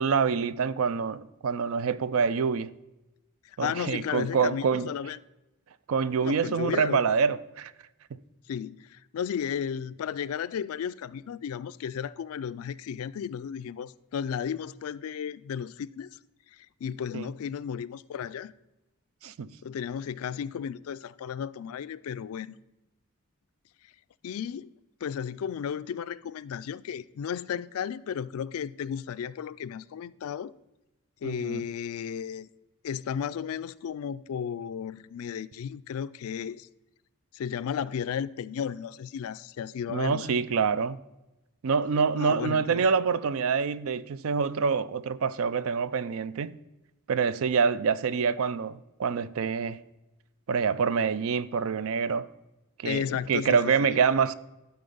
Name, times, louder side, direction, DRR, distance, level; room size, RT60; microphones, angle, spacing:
voice 1, 0.0-2.7 3.6-4.9 5.9-7.7 17.1-17.3 19.2-19.5 31.2-31.6 39.9-41.0 41.6-46.6 47.1-49.8 50.5-52.3 52.8-53.0 53.3-54.3, right 6 dB, 70° right, 0.4 m, -26 dB
voice 2, 3.5-5.2 6.2-7.1 8.5-16.1 16.5-18.5 19.6-22.6 24.2-24.7 25.0-30.5 31.2-32.5 32.8-36.7 37.3-40.4 42.2-42.8 52.8-53.6 53.9-54.0, left 8 dB, 75° left, 0.3 m, -34 dB
12.0 x 4.3 x 5.4 m
head